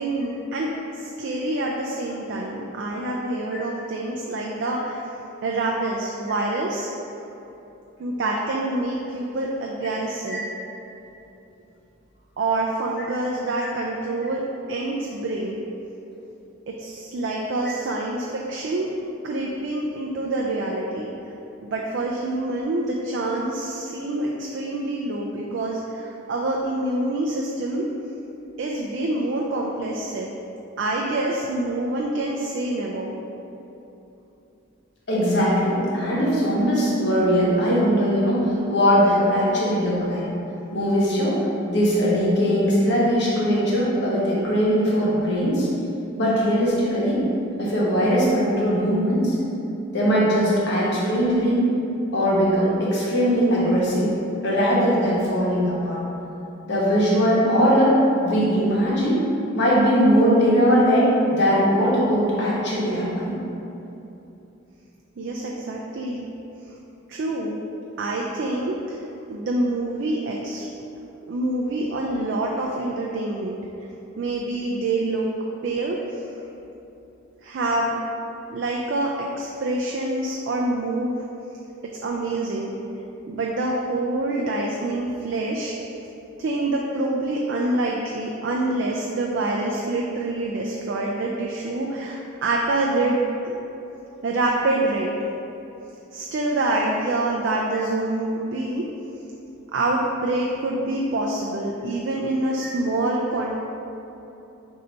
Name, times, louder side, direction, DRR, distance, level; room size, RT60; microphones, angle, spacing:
voice 1, 0.0-5.0 5.4-6.9 8.0-10.4 12.4-15.6 16.7-18.9 19.2-21.1 21.6-27.9 28.6-30.3 30.8-33.1 65.2-66.3 67.1-67.6 68.0-69.0 69.3-70.7 71.3-73.6 74.2-75.3 75.6-76.2 77.4-77.9 78.5-81.2 82.0-82.8 83.3-85.7 86.4-93.6 94.2-95.1 96.1-98.8 99.7-103.6, right 2 dB, 55° right, -2 dB, 0.3 m, -26 dB
voice 2, 35.1-40.3 40.7-41.4 41.6-45.7 46.1-47.2 47.6-49.4 49.9-51.7 52.1-54.1 54.4-56.0 56.7-59.2 59.5-63.3, equal, 55° left, -6 dB, 1.0 m, -20 dB
3.9 x 2.7 x 4.3 m, 2.9 s
head